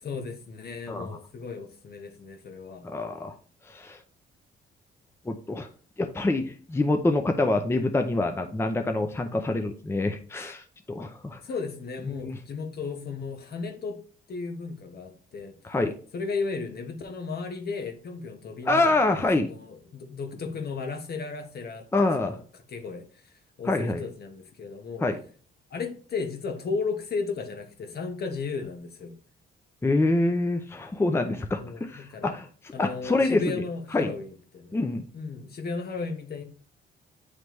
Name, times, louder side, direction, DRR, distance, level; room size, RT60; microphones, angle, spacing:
voice 1, 0.0-2.9 11.4-14.0 14.3-15.6 16.1-22.4 22.7-23.1 23.6-25.1 25.7-29.2 31.6-32.4 32.7-34.8 35.1-36.4, left 4 dB, 50° left, 1.1 m, -35 dB
voice 2, 2.8-3.3 3.7-4.0 5.3-5.7 6.0-11.4 12.2-12.4 15.6-15.9 18.7-19.5 21.9-22.3 23.6-24.0 25.0-25.2 29.8-33.6 33.9-34.1 34.7-35.0, left 2 dB, 10° left, 0.6 m, -26 dB
9.2 x 3.3 x 3.1 m
cardioid pair, 90°, 20 cm